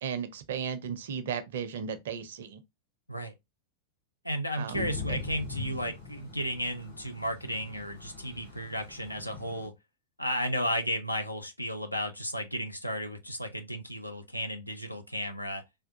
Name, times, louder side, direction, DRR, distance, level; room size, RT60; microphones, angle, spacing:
voice 1, 0.0-2.6 4.6-5.2, right 7 dB, 60° right, 0.5 m, -35 dB
voice 2, 4.2-9.8 10.2-15.6, equal, 90° left, 0.5 m, -34 dB
Thunder / Rain, 4.7-9.7, left 4 dB, 70° left, 1.5 m, -42 dB
3.4 x 2.3 x 2.6 m
figure-of-eight pair, 90°, 0 cm